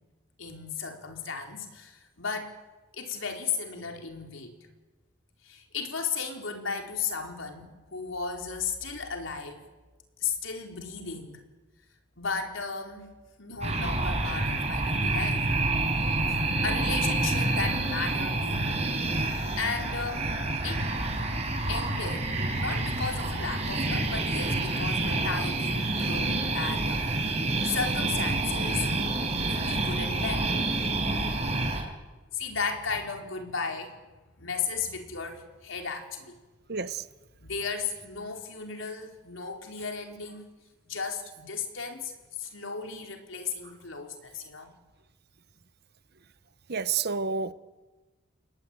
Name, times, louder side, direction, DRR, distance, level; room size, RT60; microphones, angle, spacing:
voice 1, 0.4-2.5 2.9-4.5 5.4-9.6 10.2-11.4 12.2-13.1 13.4-15.5 16.3-16.4 16.6-18.8 19.6-20.3 20.6-20.8 21.7-27.2 27.6-28.9 29.5-30.5 32.3-33.9 34.4-36.4 37.4-40.5 40.8-42.1 42.4-44.7, left 5 dB, 80° left, 4.5 m, -35 dB
sound 1, 13.6-31.8, right 2 dB, 35° right, 6.2 m, -28 dB
voice 2, 36.7-37.1 46.7-47.5, right 5 dB, 55° right, 1.1 m, -29 dB
29.5 x 21.5 x 9.2 m
head